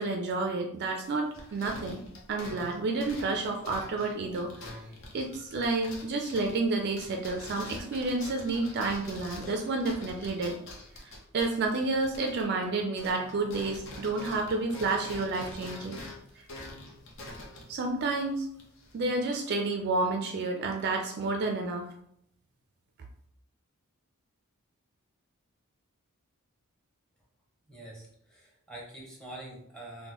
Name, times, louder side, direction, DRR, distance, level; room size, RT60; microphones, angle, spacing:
voice 1, 0.0-2.0 2.3-4.7 5.1-10.6 11.3-16.0 17.7-18.5 18.9-21.9, right 3 dB, 50° right, 3 dB, 0.3 m, -30 dB
sound 1, 1.0-12.7 12.9-19.1, left 1 dB, 60° left, 0.7 m, -45 dB
voice 2, 27.7-30.1, right 1 dB, 5° left, -4 dB, 0.9 m, -45 dB
3.6 x 2.1 x 2.9 m, 0.70 s
head